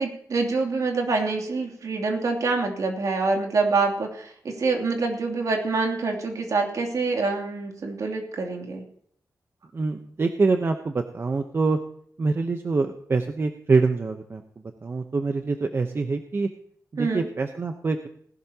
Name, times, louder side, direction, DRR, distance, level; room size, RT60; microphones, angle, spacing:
voice 1, 0.0-8.8 17.0-17.3, right 3 dB, 65° right, 2 dB, 2.8 m, -26 dB
voice 2, 9.7-11.8 12.2-14.4 14.8-16.5 16.9-18.1, right 3 dB, 40° right, 6 dB, 0.9 m, -25 dB
19.0 x 12.0 x 2.9 m, 0.64 s
wide cardioid pair, 135°, 6 cm